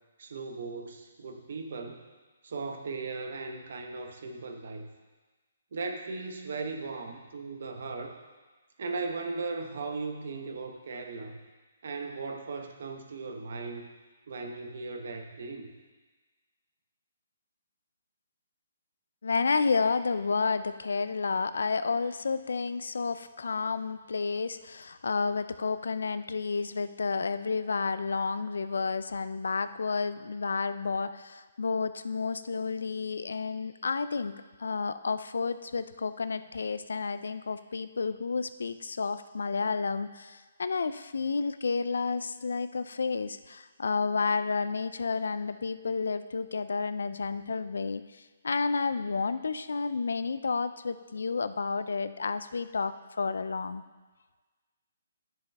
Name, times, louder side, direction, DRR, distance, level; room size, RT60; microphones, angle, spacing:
voice 1, 0.2-2.0 2.4-4.9 5.7-8.2 8.8-11.4 11.8-13.9 14.3-15.7, right 3 dB, 65° right, 4 dB, 1.1 m, -37 dB
voice 2, 19.2-48.0 48.4-53.8, left 4 dB, 80° left, 13 dB, 0.4 m, -31 dB
10.5 x 6.8 x 3.5 m, 1.3 s
hypercardioid pair, 155°, 0 cm